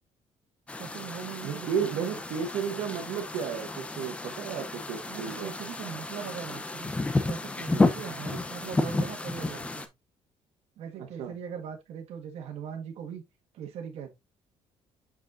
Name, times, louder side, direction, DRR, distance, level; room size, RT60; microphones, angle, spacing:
sound 1, 0.7-9.9, left 2 dB, 10° left, 0.6 m, -31 dB
voice 1, 0.8-2.2 5.1-6.9 7.2-9.9 10.8-13.2 13.5-14.1, right 8 dB, 65° right, 1.7 m, -40 dB
voice 2, 1.4-5.5 11.0-11.3, right 7 dB, 90° right, 1.4 m, -33 dB
6.5 x 6.3 x 2.5 m
cardioid pair, 170°, 11 cm